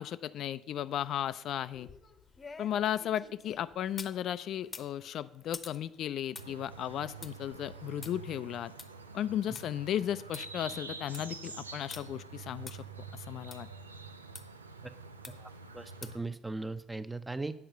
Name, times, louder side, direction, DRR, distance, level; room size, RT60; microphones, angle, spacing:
voice 1, 0.0-1.9 2.6-8.7 9.1-12.8 13.1-13.7, left 11 dB, 50° left, 14 dB, 0.3 m, -35 dB
sound 1, 1.7-4.2 4.6-9.6 10.0-10.1 10.3-10.4 10.9-11.3 11.9-12.0 12.7-12.8 13.5-13.6 14.3-14.4 15.2-15.6 16.0-16.3 16.7-16.8, left 4 dB, 30° left, 0.8 m, -48 dB
sound 2, 6.3-16.2, right 4 dB, 85° right, 0.5 m, -47 dB
voice 2, 15.4-17.5, right 3 dB, 15° right, 11 dB, 0.7 m, -38 dB
8.8 x 5.4 x 6.8 m, 0.79 s
figure-of-eight pair, 55°, 0 cm